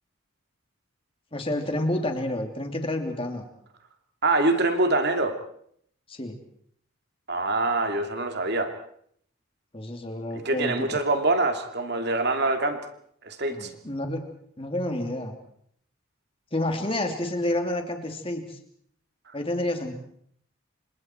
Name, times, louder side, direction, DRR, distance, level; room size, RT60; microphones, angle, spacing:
voice 1, 1.3-3.4 6.1-6.4 9.7-11.0 13.5-14.3 14.6-15.3 16.5-18.6 19.3-19.9, left 1 dB, 25° left, 4 dB, 2.8 m, -29 dB
voice 2, 4.2-5.4 7.3-8.7 10.3-12.8 13.2-13.7, right 2 dB, 50° right, 5 dB, 2.7 m, -24 dB
29.0 x 26.5 x 4.5 m, 0.66 s
head